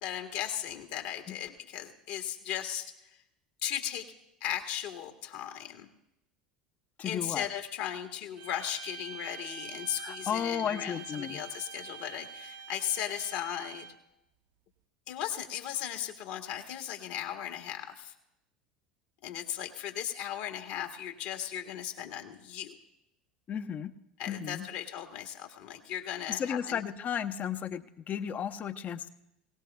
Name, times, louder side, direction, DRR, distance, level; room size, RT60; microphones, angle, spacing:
voice 1, 0.0-3.2 3.6-4.1 4.4-5.9 7.0-13.9 15.1-18.1 19.2-22.8 24.2-26.8, left 10 dB, 65° left, 4 dB, 1.7 m, -37 dB
voice 2, 7.0-7.5 10.0-11.4 23.5-23.9 24.3-24.7 26.3-29.1, left 8 dB, 40° left, 10 dB, 0.8 m, -34 dB
sound 1, 8.4-14.1, right 6 dB, 70° right, 1.0 m, -45 dB
21.0 x 18.0 x 2.3 m, 0.84 s
hypercardioid pair, 75°, 4 cm